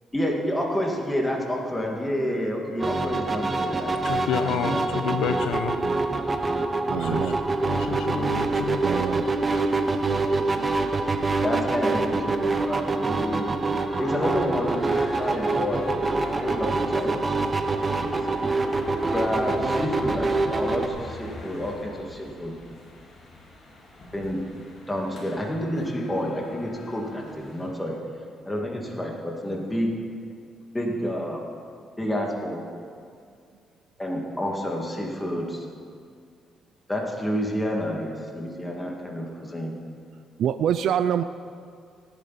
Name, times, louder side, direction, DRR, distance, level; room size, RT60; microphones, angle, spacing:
voice 1, 0.1-4.8 11.4-13.6 14.0-15.9 16.4-17.5 18.0-18.1 19.1-22.6 24.1-24.4 24.9-28.0 28.4-30.0 30.7-31.4 32.0-32.7 34.0-35.7 36.9-39.7, equal, 10° left, -1 dB, 2.1 m, -29 dB
sound 1, 2.8-20.9, right 3 dB, 30° right, 1.0 m, -25 dB
voice 2, 4.0-5.8 6.9-7.4 7.6-8.9, left 7 dB, 85° left, 9 dB, 0.8 m, -29 dB
voice 3, 6.9-7.4 8.8-9.8 40.4-41.2, right 9 dB, 75° right, 11 dB, 0.4 m, -26 dB
sound 2, 13.9-27.7, left 2 dB, 55° left, 4.0 m, -41 dB
17.0 x 10.5 x 4.2 m, 2.2 s
cardioid pair, 90°, 0 cm